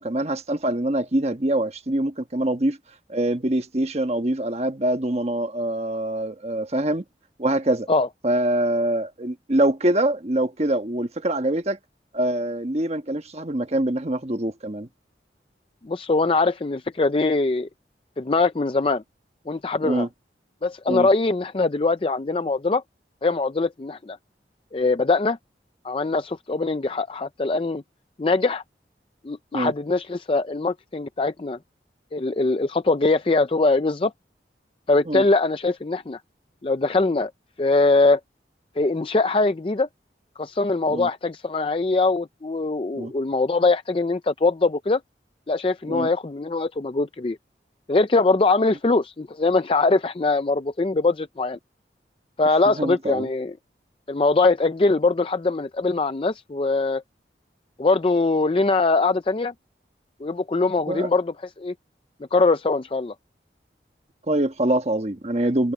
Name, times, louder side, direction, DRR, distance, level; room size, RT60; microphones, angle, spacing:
voice 1, 0.0-2.8 3.1-7.0 7.4-7.9 8.2-11.8 12.1-14.9 19.8-20.1 20.9-21.1 29.5-29.7 35.1-35.2 40.9-41.1 42.9-43.1 45.9-46.1 52.6-53.3 60.9-61.1 64.3-65.7, right 1 dB, 35° right, 1.3 m, -24 dB
voice 2, 15.8-17.7 18.2-19.0 19.5-20.1 20.6-22.8 23.2-24.2 24.7-25.4 25.8-27.8 28.2-28.6 29.2-31.6 32.1-34.1 34.9-36.2 36.6-37.3 37.6-38.2 38.8-39.9 40.4-45.0 45.5-47.4 47.9-51.6 52.4-53.6 54.1-57.0 57.8-59.5 60.2-61.7 62.3-63.1, left 3 dB, 30° left, 0.5 m, -22 dB
head